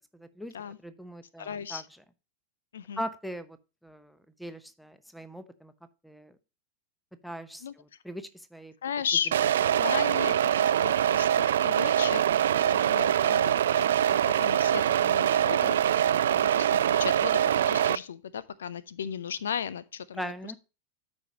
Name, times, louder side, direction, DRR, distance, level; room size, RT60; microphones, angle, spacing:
voice 1, 0.2-0.5 0.8-1.8 3.0-3.6 3.8-5.7 6.0-6.3 7.2-7.6 8.0-8.7 20.2-20.6, equal, ahead, 0.8 m, -40 dB
voice 2, 1.4-1.9 2.7-3.0 7.6-7.7 8.8-9.4 9.7-12.2 12.5-15.8 16.3-17.4 17.7-20.5, left 8 dB, 65° left, 0.5 m, -35 dB
sound 1, 9.3-17.9, right 10 dB, 60° right, 0.3 m, -24 dB
13.0 x 5.3 x 2.8 m
figure-of-eight pair, 90°, 0 cm